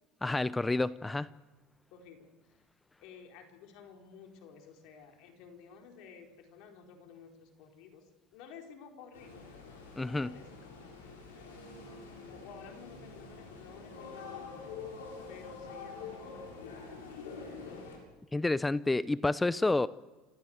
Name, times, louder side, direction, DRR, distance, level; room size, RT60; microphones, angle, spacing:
voice 1, 0.2-1.3 10.0-10.3 18.3-19.9, left 2 dB, 15° left, 18 dB, 0.7 m, -29 dB
voice 2, 1.9-2.6 3.0-9.5 10.1-11.0 12.3-14.7 15.3-17.2, left 6 dB, 65° left, 3 dB, 4.4 m, -53 dB
sound 1, 9.1-18.0, left 4 dB, 85° left, 6.9 m, -46 dB
28.0 x 15.0 x 8.0 m, 1.3 s
hypercardioid pair, 80°, 0 cm